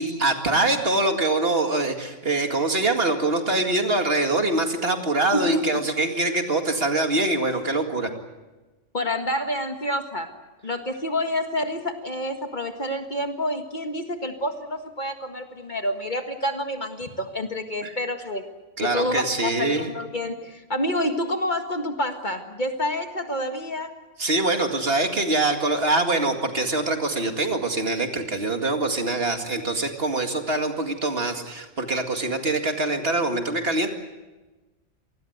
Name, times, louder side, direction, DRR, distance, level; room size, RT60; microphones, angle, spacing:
voice 1, 0.0-8.1 17.8-17.9 18.8-19.9 24.2-33.9, right 2 dB, 50° right, 5 dB, 2.4 m, -24 dB
voice 2, 8.9-10.3 10.6-18.5 18.8-23.9, left 1 dB, 40° left, 5 dB, 1.9 m, -28 dB
27.5 x 19.5 x 8.0 m, 1.1 s
omnidirectional pair, 1.3 m